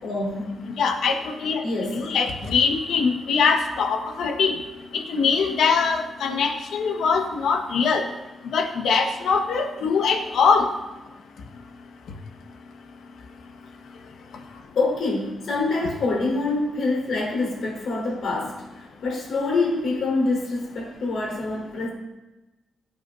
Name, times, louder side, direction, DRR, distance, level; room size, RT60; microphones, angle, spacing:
voice 1, 0.0-0.6 1.6-2.0 14.7-18.6 19.0-21.9, left 3 dB, 60° left, -2 dB, 4.5 m, -25 dB
voice 2, 0.8-1.6 1.9-4.5 5.1-8.0 8.4-10.7, left 5 dB, 90° left, 3 dB, 1.4 m, -22 dB
22.0 x 8.7 x 2.7 m, 1.1 s
wide cardioid pair, 165°, 0 cm